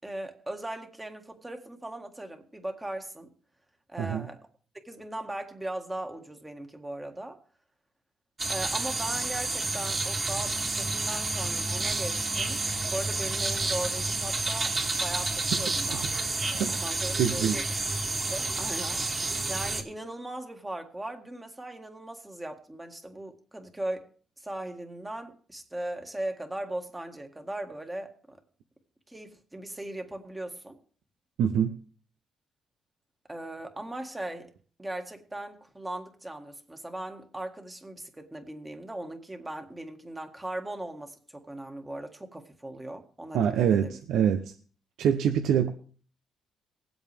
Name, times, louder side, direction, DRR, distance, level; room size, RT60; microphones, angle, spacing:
voice 1, 0.0-3.3 3.9-4.4 4.8-7.4 8.5-12.6 12.9-16.1 16.4-17.6 18.1-19.0 19.5-24.1 24.4-28.4 29.1-30.8 33.3-34.5 34.8-44.0, right 1 dB, 15° right, 1.8 m, -38 dB
sound 1, 8.4-19.8, right 3 dB, 30° right, 2.8 m, -30 dB
voice 2, 17.2-17.6 31.4-31.7 43.3-44.4 45.0-45.7, right 8 dB, 80° right, 0.8 m, -25 dB
19.5 x 8.0 x 3.5 m
cardioid pair, 90°, 0 cm